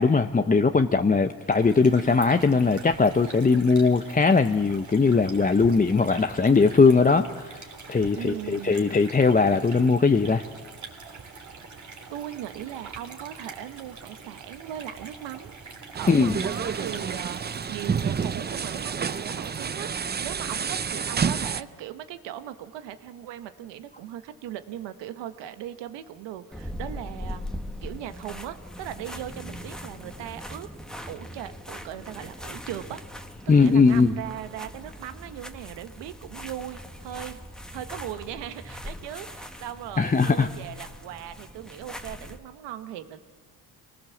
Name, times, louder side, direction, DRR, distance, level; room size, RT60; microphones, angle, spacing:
voice 1, 0.0-10.4 16.1-16.4 33.5-34.1 40.0-40.5, left 4 dB, 20° left, 7 dB, 0.8 m, -20 dB
sound 1, 1.4-20.0, right 4 dB, 45° right, 3.5 m, -44 dB
voice 2, 8.2-8.8 12.1-15.5 15.9-17.4 17.7-27.4 27.8-30.7 31.1-33.0 33.6-37.4 37.7-43.3, right 11 dB, 85° right, 10 dB, 1.3 m, -38 dB
sound 2, 16.0-21.6, right 6 dB, 25° right, 0.6 m, -29 dB
sound 3, 26.5-42.4, equal, ahead, 1.7 m, -40 dB
25.0 x 19.0 x 7.2 m, 1.5 s
supercardioid pair, 75°, 41 cm